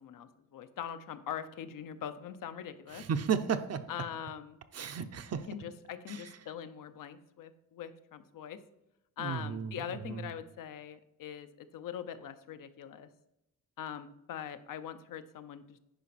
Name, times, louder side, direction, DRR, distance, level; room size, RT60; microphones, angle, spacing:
voice 1, 0.0-3.0 3.9-4.6 5.3-8.6 9.2-13.1 13.8-15.8, left 9 dB, 85° left, 10 dB, 0.7 m, -42 dB
voice 2, 2.9-3.8 4.7-5.4 6.1-6.2 9.2-9.7 10.1-10.3, right 7 dB, 50° right, 10 dB, 0.6 m, -33 dB
9.9 x 5.2 x 4.1 m, 0.88 s
wide cardioid pair, 125°, 32 cm